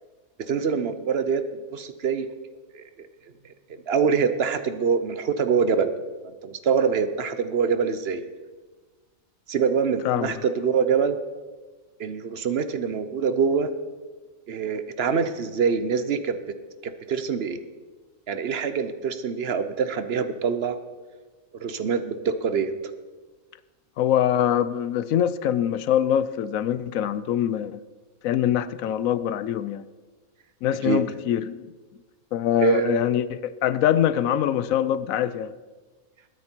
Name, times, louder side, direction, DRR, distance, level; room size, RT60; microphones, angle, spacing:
voice 1, 0.4-2.3 2.7-3.1 3.7-5.9 6.2-8.2 9.5-11.2 12.0-13.7 14.5-16.4 16.8-17.6 18.3-20.8 21.5-22.7 30.8-31.0 32.6-33.0, right 6 dB, 50° right, 11 dB, 1.0 m, -25 dB
voice 2, 24.0-27.8 28.2-29.8 30.6-31.7 32.3-35.5, left 10 dB, 75° left, 15 dB, 1.0 m, -24 dB
20.5 x 9.4 x 4.5 m, 1.3 s
omnidirectional pair, 1.5 m